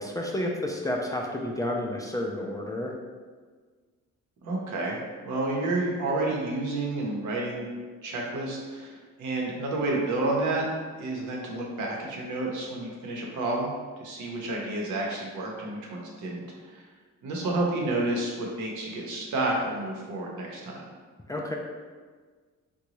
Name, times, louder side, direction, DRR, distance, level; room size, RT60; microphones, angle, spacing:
voice 1, 0.0-2.9 21.3-21.6, left 1 dB, 10° left, -1 dB, 0.3 m, -30 dB
voice 2, 4.4-5.0 5.2-7.7 8.0-10.6 11.0-13.7 14.0-16.8 17.2-20.8, right 2 dB, 75° right, -2 dB, 0.9 m, -30 dB
3.8 x 2.3 x 3.0 m, 1.5 s
cardioid pair, 90°, 30 cm